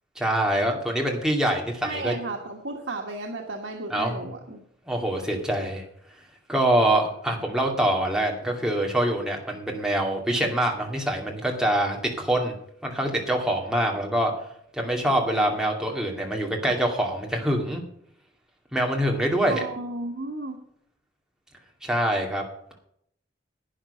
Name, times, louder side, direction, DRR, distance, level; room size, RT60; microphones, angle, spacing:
voice 1, 0.2-2.1 3.9-4.3 4.8-5.8 6.5-12.5 12.8-14.3 14.7-17.8 18.7-19.6 21.8-22.4, right 1 dB, 5° right, 0 dB, 2.4 m, -25 dB
voice 2, 1.8-4.6 19.5-20.6, right 2 dB, 90° right, 1 dB, 1.5 m, -33 dB
11.5 x 9.3 x 5.6 m, 0.70 s
head